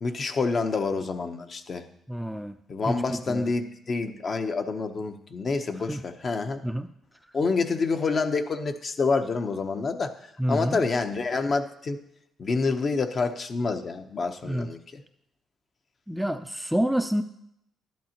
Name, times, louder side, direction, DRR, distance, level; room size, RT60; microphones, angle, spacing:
voice 1, 0.0-1.9 2.7-6.6 7.3-10.1 10.5-12.0 12.4-15.0, left 4 dB, 45° left, 6 dB, 0.8 m, -27 dB
voice 2, 2.1-2.5 2.9-3.0 3.3-3.5 5.9-6.0 6.6-6.9 10.4-10.8 14.4-14.7 16.1-17.2, equal, ahead, 8 dB, 0.4 m, -27 dB
12.0 x 10.5 x 2.9 m, 0.76 s
cardioid pair, 90°, 0 cm